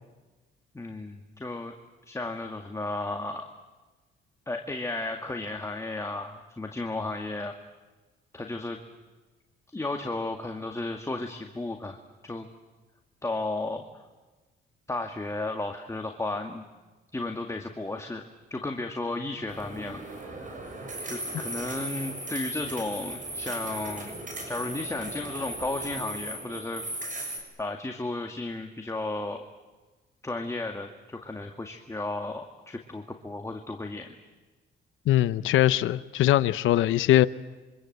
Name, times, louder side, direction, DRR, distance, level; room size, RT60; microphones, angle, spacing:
voice 1, 0.7-1.7 2.1-3.5 4.5-7.5 8.3-8.8 9.7-12.0 12.2-12.5 13.2-13.8 14.9-16.6 17.1-18.2 18.5-20.1 21.1-24.1 24.5-26.9 27.2-29.4 30.2-34.1, left 2 dB, 15° left, 2.2 m, -34 dB
sound 1, 19.5-27.4, right 1 dB, 40° right, 6.8 m, -37 dB
voice 2, 35.1-37.3, left 13 dB, 80° left, 0.8 m, -21 dB
27.0 x 25.0 x 7.9 m
cardioid pair, 90°, 20 cm